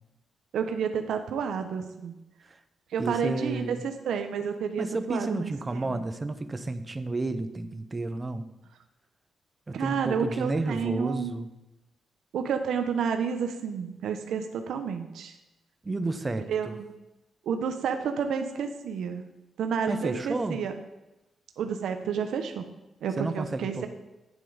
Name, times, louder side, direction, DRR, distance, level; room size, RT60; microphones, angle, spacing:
voice 1, 0.5-2.1 2.9-6.0 9.7-11.4 12.3-15.3 16.5-16.9 17.4-19.2 19.6-20.7 21.6-22.7 23.0-23.9, right 6 dB, 80° right, 6 dB, 1.0 m, -30 dB
voice 2, 3.0-3.8 4.8-8.5 9.7-11.5 15.8-16.8 19.9-20.6 23.2-23.9, right 2 dB, 20° right, 10 dB, 0.7 m, -31 dB
11.5 x 9.4 x 5.1 m, 0.99 s
wide cardioid pair, 175°, 0 cm